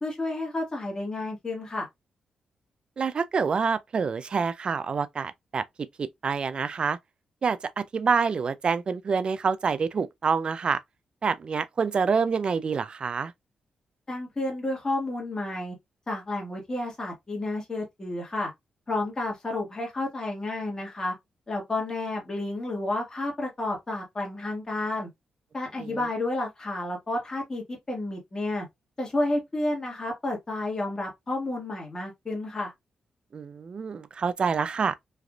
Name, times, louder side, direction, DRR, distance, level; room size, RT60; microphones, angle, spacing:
voice 1, 0.0-1.9 14.1-15.7 16.1-18.5 18.9-21.1 21.5-25.1 25.5-28.6 29.0-32.7, left 2 dB, 30° left, 1.2 m, -31 dB
voice 2, 3.0-5.6 6.0-7.0 7.4-10.8 11.2-13.3 25.8-26.0 33.3-34.9, right 5 dB, 45° right, 0.4 m, -27 dB
3.3 x 2.4 x 2.3 m
cardioid pair, 80°, 2 cm